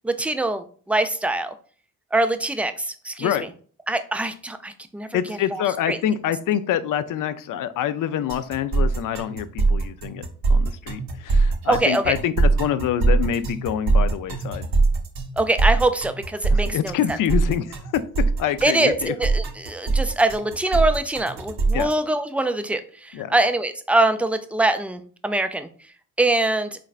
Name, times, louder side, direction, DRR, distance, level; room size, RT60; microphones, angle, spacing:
voice 1, 0.0-1.5 2.1-3.3 3.9-6.0 11.7-12.1 15.4-16.9 18.6-25.7 26.2-26.7, right 2 dB, 5° right, 9 dB, 0.4 m, -23 dB
voice 2, 5.1-14.7 16.5-18.0 18.4-19.1 21.7-21.9 23.1-23.3, left 10 dB, 55° left, 13 dB, 0.5 m, -26 dB
sound 1, 8.3-21.9, right 3 dB, 65° right, 0.9 m, -22 dB
3.8 x 3.3 x 2.4 m, 0.44 s
supercardioid pair, 55°, 38 cm